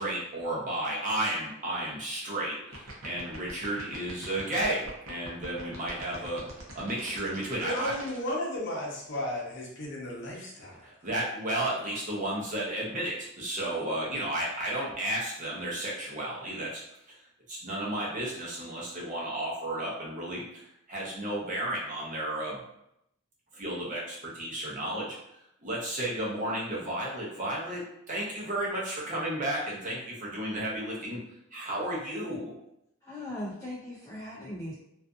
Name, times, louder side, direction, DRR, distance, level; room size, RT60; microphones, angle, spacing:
voice 1, 0.0-6.4 6.7-7.9 10.8-16.8 17.1-17.2 17.5-20.4 20.9-22.6 23.5-25.2 25.6-31.2 31.5-32.5, right 1 dB, 35° right, -4 dB, 0.7 m, -33 dB
sound 1, 2.6-8.2, right 1 dB, 80° right, 0.7 m, -43 dB
voice 2, 7.6-10.8, left 1 dB, 55° left, -3 dB, 0.7 m, -34 dB
voice 3, 33.0-34.7, left 1 dB, 15° left, -7 dB, 0.4 m, -38 dB
2.5 x 2.5 x 2.3 m, 0.80 s
head